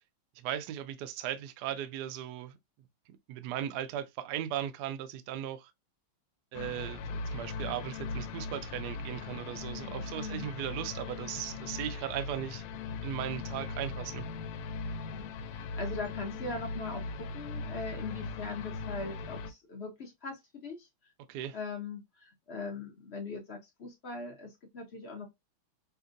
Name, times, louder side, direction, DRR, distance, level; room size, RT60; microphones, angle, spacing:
voice 1, 0.4-2.6 3.3-5.7 6.5-12.6 13.0-14.2 21.3-21.6, right 11 dB, 75° right, 0.9 m, -37 dB
sound 1, 6.5-19.5, left 4 dB, 85° left, 1.4 m, -39 dB
voice 2, 9.7-10.5 15.1-20.9 21.5-25.3, left 3 dB, 50° left, 0.7 m, -41 dB
5.3 x 2.6 x 2.5 m
omnidirectional pair, 2.3 m